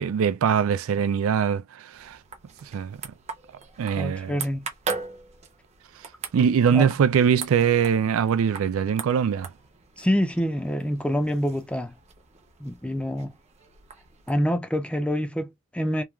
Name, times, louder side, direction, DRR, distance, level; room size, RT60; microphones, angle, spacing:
voice 1, 0.0-2.2 2.6-3.0 3.8-4.4 6.3-9.5, right 7 dB, 70° right, 0.3 m, -22 dB
sound 1, 1.9-14.4, right 5 dB, 30° right, 0.6 m, -40 dB
voice 2, 4.0-4.7 6.7-6.9 10.0-11.9 12.6-13.3 14.3-16.0, equal, 5° left, 0.4 m, -26 dB
3.0 x 2.3 x 2.3 m
head